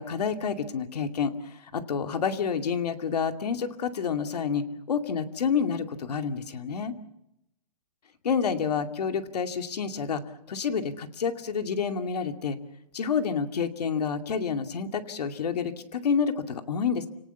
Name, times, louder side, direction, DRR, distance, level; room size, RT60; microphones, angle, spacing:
voice 1, 0.0-7.0 8.2-10.2 10.5-12.6 12.9-17.1, left 6 dB, 75° left, 7 dB, 2.4 m, -29 dB
29.5 x 18.5 x 7.0 m, 0.84 s
hypercardioid pair, 170°, 20 cm